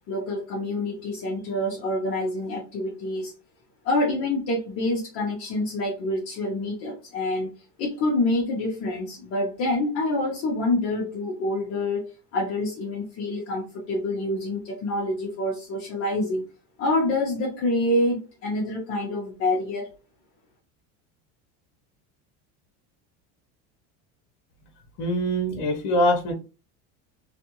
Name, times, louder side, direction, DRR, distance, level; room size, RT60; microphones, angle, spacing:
voice 1, 0.1-3.3 3.8-7.5 7.8-12.1 12.3-16.4 16.8-19.9, left 1 dB, 40° left, -2 dB, 0.7 m, -27 dB
voice 2, 25.0-26.3, equal, 75° left, 2 dB, 0.8 m, -23 dB
2.7 x 2.5 x 2.8 m, 0.32 s
cardioid pair, 155°, 35 cm